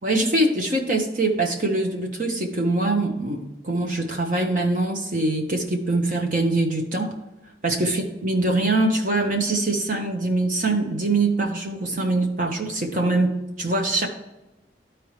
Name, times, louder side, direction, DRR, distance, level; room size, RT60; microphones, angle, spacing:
voice 1, 0.0-7.1 7.6-14.1, right 2 dB, 45° right, 2 dB, 1.0 m, -23 dB
12.5 x 4.6 x 3.2 m, 0.97 s
head